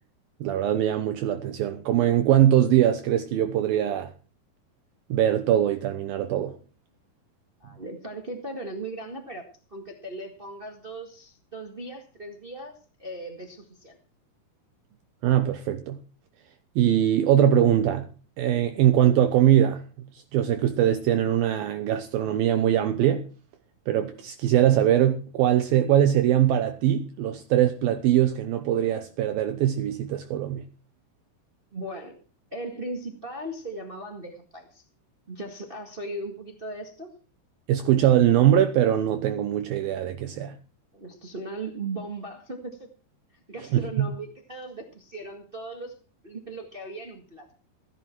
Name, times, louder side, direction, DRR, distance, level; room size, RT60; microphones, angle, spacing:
voice 1, 0.4-4.1 5.1-6.5 15.2-16.0 16.8-18.1 18.4-19.8 20.1-23.2 23.9-30.7 37.7-40.6 43.7-44.1, right 11 dB, 75° right, 2.5 m, -22 dB
voice 2, 7.6-12.7 13.0-14.0 31.7-32.2 32.5-34.8 35.3-37.1 40.9-42.9 43.5-45.9 46.2-47.5, right 2 dB, 55° right, 0.5 m, -38 dB
16.5 x 11.0 x 4.6 m
omnidirectional pair, 4.7 m